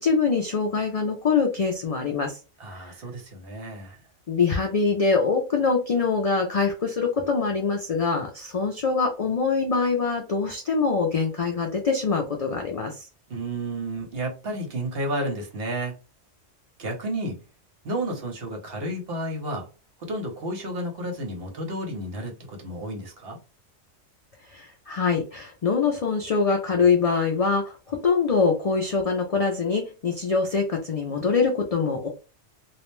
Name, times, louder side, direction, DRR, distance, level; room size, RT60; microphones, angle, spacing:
voice 1, 0.0-2.4 2.9-3.0 4.3-13.1 24.5-32.1, left 5 dB, 70° left, 0.3 m, -24 dB
voice 2, 2.6-4.0 13.3-15.9 16.8-17.4 17.8-19.7 20.0-23.4, right 1 dB, 55° right, 1.0 m, -31 dB
2.4 x 2.1 x 3.0 m
omnidirectional pair, 1.2 m